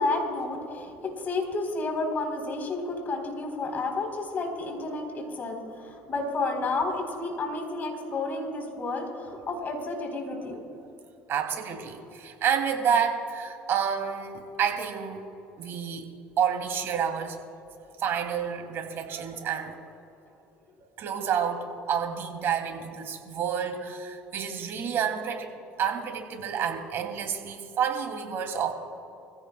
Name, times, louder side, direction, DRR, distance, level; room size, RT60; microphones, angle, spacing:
voice 1, 0.0-10.6, left 3 dB, 40° left, 2 dB, 4.0 m, -31 dB
voice 2, 11.3-15.3 15.6-16.1 16.4-17.4 18.0-19.9 21.0-28.7, right 7 dB, 55° right, 3 dB, 2.8 m, -29 dB
26.0 x 16.0 x 2.3 m, 2.7 s
supercardioid pair, 80°, 5 cm